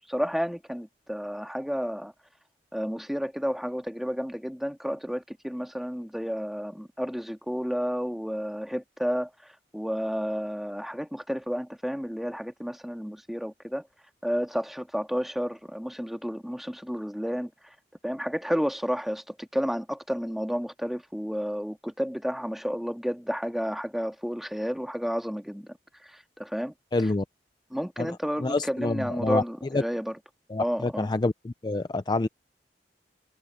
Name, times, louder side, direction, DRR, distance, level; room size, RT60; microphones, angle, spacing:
voice 1, 0.1-2.1 2.7-13.8 14.2-17.5 18.0-25.8 26.0-26.7 27.7-30.1 30.6-31.1, equal, ahead, 1.7 m, -31 dB
voice 2, 26.9-27.2 28.0-29.4 29.7-29.8 30.5-32.3, left 2 dB, 25° left, 0.4 m, -27 dB
head